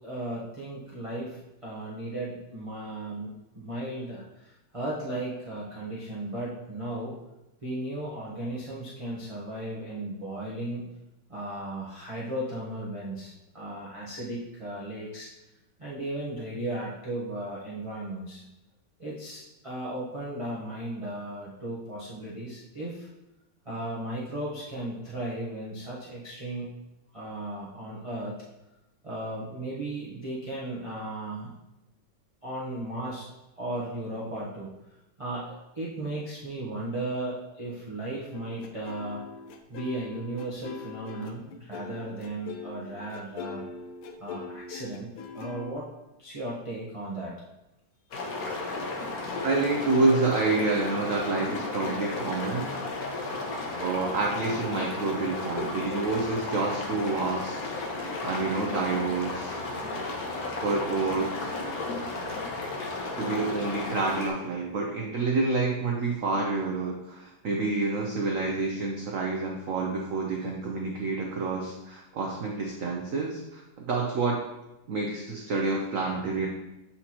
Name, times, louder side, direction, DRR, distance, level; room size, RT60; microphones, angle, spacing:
voice 1, 0.0-7.1 7.6-10.8 11.3-15.3 15.8-18.4 19.0-23.1 23.6-26.7 27.1-28.4 29.0-31.5 32.4-33.3 33.6-34.7 35.2-35.5 35.7-39.2 39.7-43.6 44.2-45.1 45.3-45.8 46.2-47.3, right 1 dB, 30° right, -7 dB, 0.5 m, -35 dB
sound 1, 38.3-45.7, left 5 dB, 85° left, 1.5 m, -42 dB
sound 2, 48.1-64.3, left 2 dB, 55° left, 1.2 m, -34 dB
voice 2, 49.4-52.7 53.7-57.7 58.2-59.6 60.6-61.3 63.2-74.4 74.9-76.5, right 3 dB, 75° right, 0 dB, 0.7 m, -28 dB
7.9 x 4.2 x 2.9 m, 0.95 s
omnidirectional pair, 2.2 m